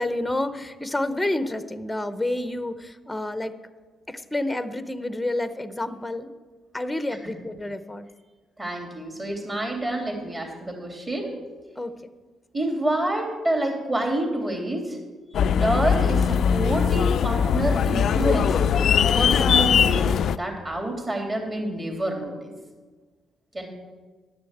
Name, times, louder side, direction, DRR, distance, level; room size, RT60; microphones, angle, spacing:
voice 1, 0.0-3.5 4.1-6.3 6.7-8.1 11.8-11.9, left 1 dB, 10° left, 11 dB, 0.8 m, -29 dB
voice 2, 8.6-11.3 12.5-15.0 15.5-18.6 19.2-22.5 23.5-23.7, right 1 dB, 25° right, 1 dB, 3.3 m, -28 dB
sound 1, 15.3-20.4, left 7 dB, 65° left, 0.3 m, -20 dB
11.0 x 6.9 x 7.9 m, 1.4 s
cardioid pair, 90°, 0 cm